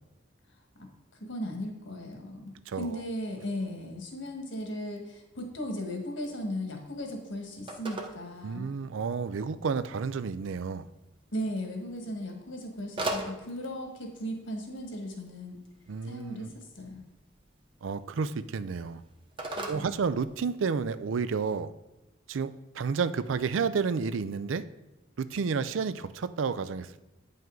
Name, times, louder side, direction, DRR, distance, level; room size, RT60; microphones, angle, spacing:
voice 1, 1.2-8.7 11.3-15.6 16.0-17.0 19.5-19.9, equal, 75° left, 2 dB, 1.5 m, -37 dB
voice 2, 2.7-3.0 8.4-10.9 15.9-16.5 17.8-19.0 19.7-21.7 22.3-24.6 25.2-27.0, right 5 dB, 80° right, 14 dB, 0.4 m, -31 dB
Telephone, 6.3-20.8, right 2 dB, 25° right, 0.9 m, -43 dB
9.1 x 5.5 x 3.8 m, 1.0 s
head